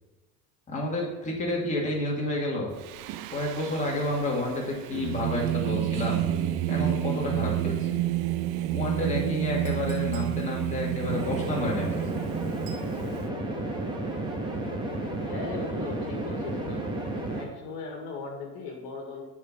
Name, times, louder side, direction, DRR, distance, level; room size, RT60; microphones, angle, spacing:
voice 1, 0.7-2.8 3.3-6.3 6.7-8.0 8.7-12.2, left 1 dB, 15° left, -3 dB, 2.2 m, -30 dB
Singing, 2.8-13.2, right 12 dB, 55° right, 0.6 m, -30 dB
Chink clink, 9.7-10.4 12.7-12.9, right 5 dB, 75° right, 1.8 m, -49 dB
sound 1, 11.1-17.4, right 1 dB, 10° right, 1.5 m, -32 dB
voice 2, 15.2-16.8 17.4-19.2, left 4 dB, 60° left, 1 dB, 1.9 m, -38 dB
7.4 x 4.5 x 5.9 m, 1.2 s
supercardioid pair, 100°, 43 cm